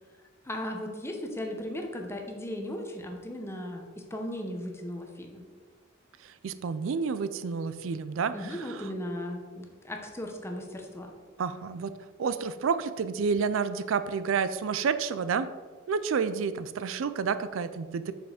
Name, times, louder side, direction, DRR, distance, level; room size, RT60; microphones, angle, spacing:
voice 1, 0.4-3.8 4.1-5.4 8.3-11.1, left 1 dB, 10° left, 2 dB, 0.9 m, -36 dB
voice 2, 6.2-8.9 11.4-11.9 12.2-15.5 15.9-18.1, right 5 dB, 75° right, 12 dB, 0.4 m, -30 dB
6.2 x 5.7 x 5.0 m, 1.5 s
head